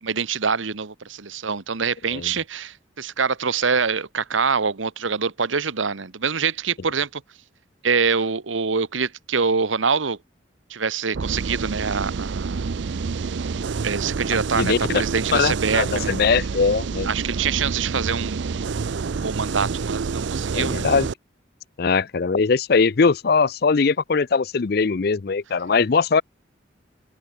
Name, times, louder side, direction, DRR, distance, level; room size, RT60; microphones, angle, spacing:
voice 1, 0.0-7.2 7.8-10.2 10.7-12.8 13.8-16.1 17.0-18.7 19.2-20.9, right 5 dB, 85° right, 1.1 m, -25 dB
sound 1, 11.1-21.1, right 5 dB, 70° right, 0.5 m, -28 dB
voice 2, 14.6-15.0 15.3-17.1 20.5-21.1 21.8-26.2, left 5 dB, 50° left, 0.5 m, -21 dB
head